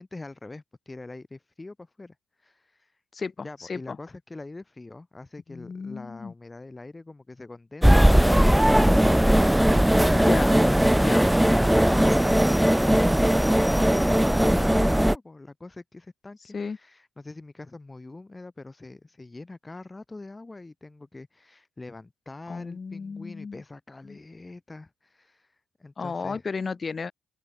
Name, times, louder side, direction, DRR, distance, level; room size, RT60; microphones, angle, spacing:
voice 1, 0.0-3.0 3.4-9.1 14.1-26.4 26.7-26.8, left 2 dB, 20° left, 3.5 m, -44 dB
voice 2, 3.1-4.0 5.5-6.3 10.1-10.6 10.9-11.3 16.5-16.8 22.5-23.6 24.1-24.2 26.0-27.1, left 5 dB, 35° left, 2.8 m, -33 dB
sound 1, 7.8-15.2, equal, 5° right, 0.7 m, -19 dB
open air
cardioid pair, 90°, 0 cm